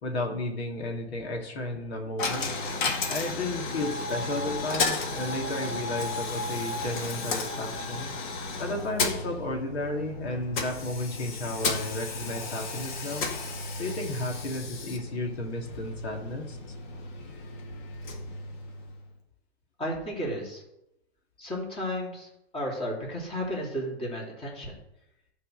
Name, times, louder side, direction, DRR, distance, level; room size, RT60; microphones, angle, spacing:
voice 1, 0.0-2.6 3.1-8.1 8.6-13.3 13.8-16.6, left 2 dB, 70° left, 1 dB, 2.6 m, -33 dB
Coin (dropping), 2.2-19.1, left 3 dB, 45° left, 1.8 m, -33 dB
voice 2, 19.8-20.6 21.4-22.3 22.5-24.7, equal, 15° left, -2 dB, 3.0 m, -33 dB
12.0 x 4.7 x 6.4 m, 0.86 s
hypercardioid pair, 135°, 32 cm